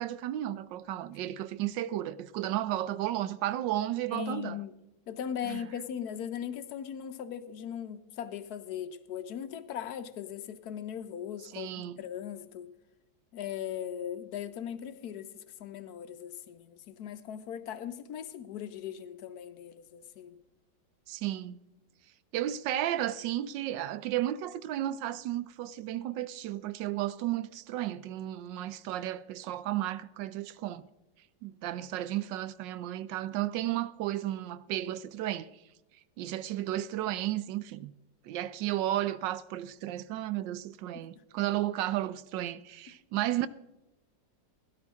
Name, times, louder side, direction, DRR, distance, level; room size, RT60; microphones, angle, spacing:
voice 1, 0.0-4.6 5.4-5.6 11.5-12.0 21.1-21.6 22.3-30.8 31.4-35.5 36.2-37.9 38.2-43.5, right 13 dB, 80° right, 1.2 m, -33 dB
voice 2, 4.1-4.7 5.1-12.7 13.3-20.4 40.9-41.1, left 9 dB, 65° left, 1.1 m, -39 dB
16.5 x 11.5 x 3.6 m
omnidirectional pair, 2.0 m